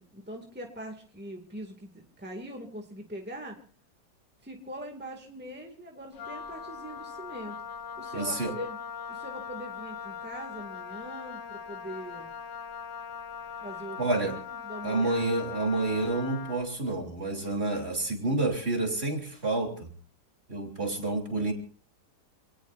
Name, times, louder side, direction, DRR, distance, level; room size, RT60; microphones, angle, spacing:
voice 1, 0.0-3.6 4.4-7.6 8.0-8.8 9.1-12.3 13.6-14.3 14.6-15.2, right 1 dB, 5° right, 2 dB, 2.2 m, -42 dB
Wind instrument woodwind instrument, 6.1-16.7, left 7 dB, 75° left, 1.8 m, -40 dB
voice 2, 8.1-8.5 14.0-14.4 14.8-19.9 20.5-21.5, right 2 dB, 35° right, 2 dB, 3.6 m, -29 dB
28.0 x 18.0 x 2.6 m, 0.39 s
omnidirectional pair, 1.9 m